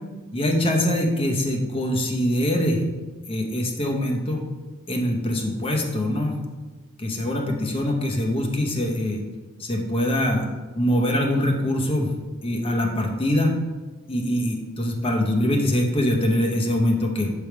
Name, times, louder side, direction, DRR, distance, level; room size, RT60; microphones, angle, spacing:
voice 1, 0.3-2.8 3.3-4.5 4.9-6.4 7.0-9.2 9.6-10.5 10.7-12.1 12.4-13.5 14.1-17.3, left 1 dB, 25° left, 1 dB, 0.7 m, -23 dB
6.0 x 3.4 x 4.6 m, 1.3 s
head